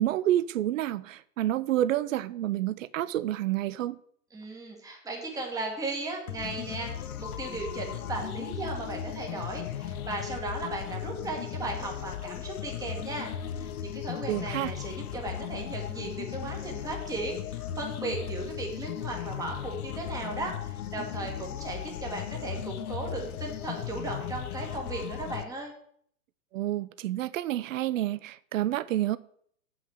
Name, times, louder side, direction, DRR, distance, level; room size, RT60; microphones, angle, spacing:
voice 1, 0.0-4.0 14.3-14.7 26.5-29.2, right 13 dB, 55° right, 0.6 m, -29 dB
voice 2, 4.3-25.7, right 2 dB, 5° right, 1.8 m, -36 dB
sound 1, 6.3-25.4, left 10 dB, 65° left, 0.8 m, -37 dB
7.4 x 5.9 x 6.4 m
hypercardioid pair, 135°, 47 cm